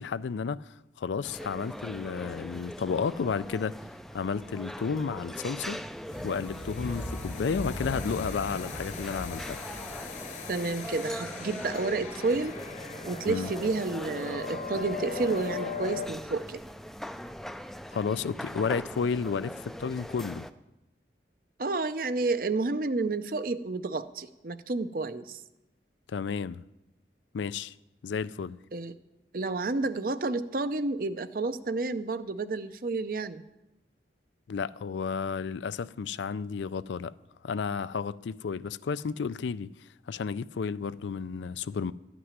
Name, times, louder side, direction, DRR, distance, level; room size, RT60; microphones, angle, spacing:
voice 1, 0.0-3.7 4.1-5.8 6.2-9.6 13.3-13.5 17.9-20.5 26.1-26.6 27.3-27.7 28.0-28.6 34.5-37.1 37.4-39.7 40.1-41.9, left 5 dB, 85° left, 0.4 m, -32 dB
sound 1, 1.2-20.5, equal, ahead, 0.3 m, -41 dB
sound 2, 6.1-16.1, left 3 dB, 40° left, 0.9 m, -38 dB
voice 2, 10.5-12.6 13.0-16.6 21.6-25.4 28.7-28.9 29.3-33.4, right 3 dB, 50° right, 0.6 m, -30 dB
13.0 x 6.1 x 9.5 m
head